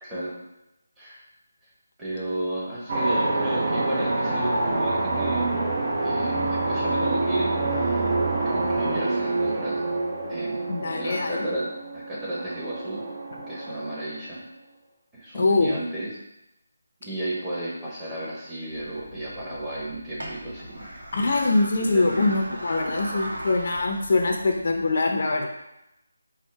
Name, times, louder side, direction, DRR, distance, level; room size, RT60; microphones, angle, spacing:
voice 1, 0.0-0.4 1.0-1.2 2.0-5.7 6.0-8.0 8.4-9.8 10.3-13.0 13.5-14.4 15.1-16.1 17.0-20.9 21.9-22.3, right 1 dB, 10° right, -9 dB, 1.0 m, -33 dB
sound 1, 2.9-14.3, right 2 dB, 40° right, 0.7 m, -27 dB
voice 2, 10.7-11.5 15.3-15.7 21.1-25.5, left 3 dB, 50° left, 2 dB, 0.5 m, -23 dB
sound 2, 18.7-25.0, right 1 dB, 75° right, 1.2 m, -39 dB
4.3 x 2.1 x 4.5 m, 0.88 s
figure-of-eight pair, 160°, 0 cm